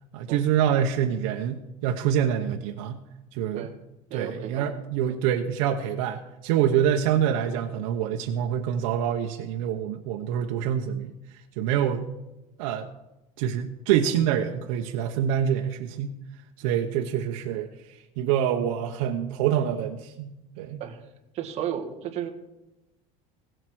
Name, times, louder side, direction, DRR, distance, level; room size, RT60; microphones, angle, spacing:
voice 1, 0.1-3.0 3.3-3.7 4.1-12.1 12.6-12.9 13.4-16.1 16.6-20.8, right 9 dB, 90° right, 3 dB, 1.0 m, -26 dB
voice 2, 4.1-4.8 5.0-5.1 20.8-21.0 21.3-22.3, right 9 dB, 40° right, 5 dB, 1.7 m, -33 dB
16.5 x 7.8 x 6.2 m, 0.96 s
cardioid pair, 160°, 17 cm